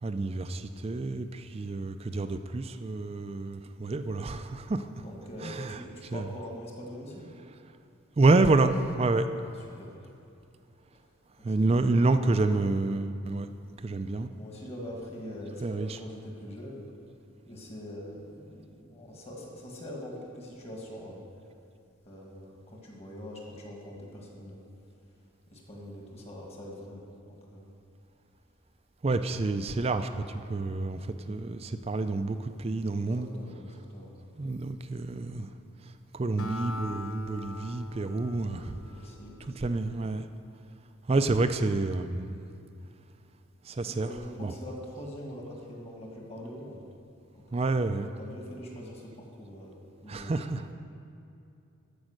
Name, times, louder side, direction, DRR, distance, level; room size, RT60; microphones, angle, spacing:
voice 1, 0.0-4.9 5.4-6.4 7.4-7.6 8.2-9.3 11.4-13.5 13.8-14.3 15.6-16.0 29.0-33.3 34.4-35.5 35.8-38.8 39.4-40.3 41.1-42.5 43.6-44.5 47.5-48.1 50.1-50.7, right 3 dB, 30° right, 9 dB, 0.4 m, -28 dB
voice 2, 5.0-7.2 9.4-9.9 11.4-11.9 14.3-16.8 17.4-21.2 22.0-24.6 25.5-27.7 33.0-34.1 38.3-39.3 43.8-46.8 47.3-47.7 48.2-50.3, equal, 30° left, -1 dB, 1.6 m, -43 dB
Acoustic guitar, 36.4-40.0, left 2 dB, 75° left, 0.7 m, -41 dB
13.5 x 5.3 x 6.5 m, 2.6 s
head